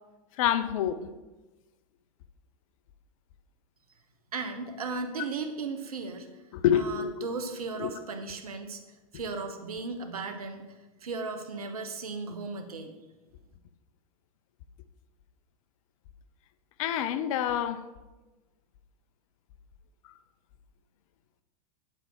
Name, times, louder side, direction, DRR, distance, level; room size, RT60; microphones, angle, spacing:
voice 1, 0.4-1.0 6.5-7.1 7.8-7.9 16.8-17.8, left 10 dB, 65° left, 0.8 m, -26 dB
voice 2, 4.3-6.3 6.7-8.8 9.1-10.6 11.0-13.0, right 4 dB, 90° right, 1.1 m, -36 dB
9.1 x 7.8 x 4.6 m
hypercardioid pair, 105°, 19 cm